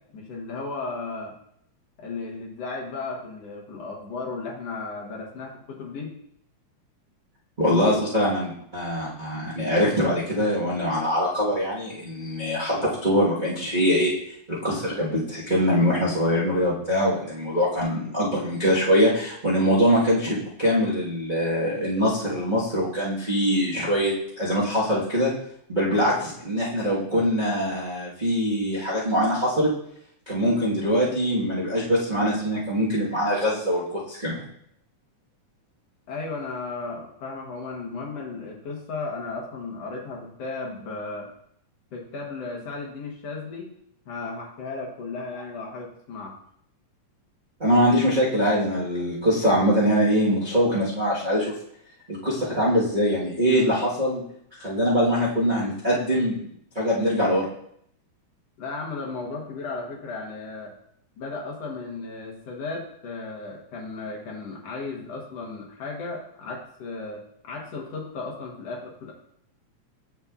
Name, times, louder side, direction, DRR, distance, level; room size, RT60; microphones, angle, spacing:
voice 1, 0.1-1.3 2.0-6.1 36.1-41.3 41.9-43.7 44.1-46.3 58.6-60.7 61.2-69.1, left 3 dB, 60° left, -1 dB, 2.1 m, -35 dB
voice 2, 7.6-14.1 14.5-25.3 25.7-29.7 30.3-34.4 47.6-51.5 52.1-54.2 54.6-56.4 56.7-57.5, equal, 50° right, -9 dB, 0.5 m, -23 dB
9.6 x 5.6 x 2.4 m, 0.69 s
omnidirectional pair, 3.5 m